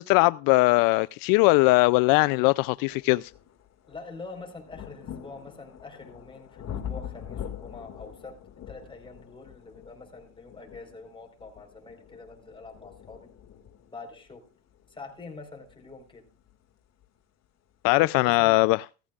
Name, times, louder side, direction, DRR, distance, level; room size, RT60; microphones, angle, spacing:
voice 1, 0.0-3.3 17.8-18.8, left 22 dB, 75° left, 0.5 m, -20 dB
sound 1, 1.8-1.9 2.5-17.2 18.1-18.2, left 9 dB, 50° left, 2.1 m, -44 dB
voice 2, 3.9-8.3 8.7-13.3 13.9-14.4 14.9-16.2 17.9-18.6, left 3 dB, 15° left, 4.3 m, -45 dB
16.0 x 14.0 x 2.4 m
cardioid pair, 110°, 34 cm